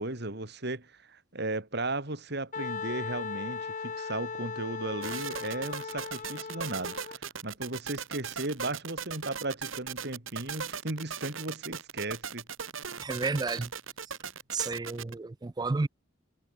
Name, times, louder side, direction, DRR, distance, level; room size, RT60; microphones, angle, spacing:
voice 1, 0.0-12.4, right 2 dB, 55° right, 2.9 m, -36 dB
Wind instrument woodwind instrument, 2.5-7.2, left 5 dB, 40° left, 0.9 m, -38 dB
sound 1, 5.0-15.1, right 6 dB, 85° right, 3.0 m, -38 dB
voice 2, 13.0-13.7 14.5-15.9, right 3 dB, 20° right, 0.4 m, -31 dB
head